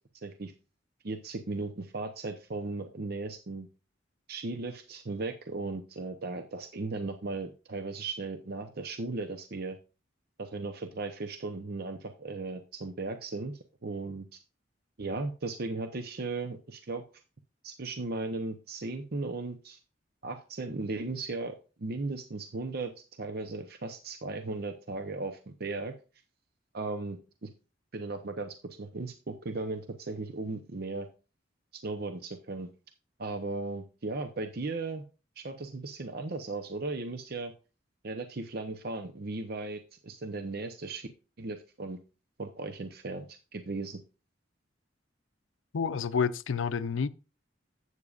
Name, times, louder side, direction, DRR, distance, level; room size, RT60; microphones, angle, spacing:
voice 1, 0.1-0.5 1.0-3.7 4.3-9.8 10.4-13.5 13.8-14.3 15.0-17.0 17.6-19.8 20.2-22.9 23.2-25.9 26.7-27.5 27.9-31.1 31.7-32.7 33.2-35.0 35.4-37.5 38.0-41.1 41.4-42.0 42.4-44.0, right 3 dB, 55° right, 0.7 m, -36 dB
voice 2, 45.7-47.1, left 6 dB, 90° left, 0.5 m, -29 dB
12.0 x 8.2 x 2.4 m
head